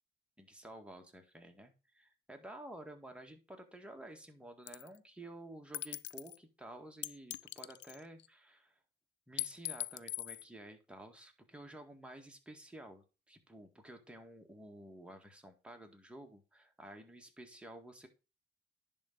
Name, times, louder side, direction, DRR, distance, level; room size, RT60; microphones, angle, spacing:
voice 1, 0.4-8.8 9.3-18.1, right 1 dB, 5° right, 3 dB, 1.7 m, -52 dB
sound 1, 4.7-5.0 5.7-6.4 7.0-8.3 9.4-10.4, left 14 dB, 70° left, 0.4 m, -41 dB
10.5 x 3.8 x 5.2 m, 0.31 s
cardioid pair, 90°, 20 cm